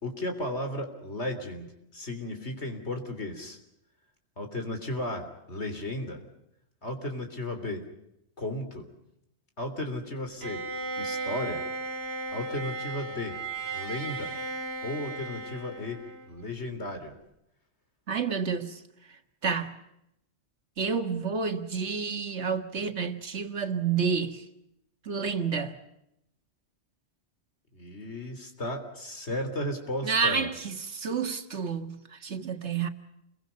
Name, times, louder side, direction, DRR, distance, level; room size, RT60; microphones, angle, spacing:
voice 1, 0.0-3.6 4.4-6.2 6.8-7.9 8.4-8.9 9.6-10.7 11.0-11.6 12.3-13.4 13.7-14.3 14.8-16.0 16.3-17.1 27.7-30.5, left 1 dB, 80° left, 3.8 m, -34 dB
Bowed string instrument, 10.4-16.5, right 3 dB, 65° right, 2.1 m, -35 dB
voice 2, 18.1-18.8 19.4-19.8 20.8-24.5 25.1-25.8 30.0-32.9, right 5 dB, 90° right, 2.0 m, -29 dB
29.0 x 23.0 x 5.4 m
omnidirectional pair, 1.1 m